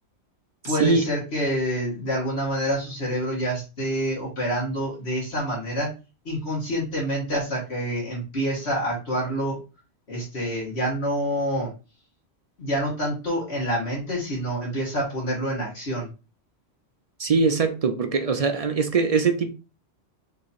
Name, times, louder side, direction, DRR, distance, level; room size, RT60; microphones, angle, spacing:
voice 1, 0.6-5.9 6.3-9.6 10.1-11.7 12.6-16.1, equal, 75° left, 2.1 m, -27 dB
voice 2, 17.2-19.5, right 4 dB, 50° right, 0.5 m, -22 dB
3.7 x 2.9 x 4.1 m
omnidirectional pair, 1.1 m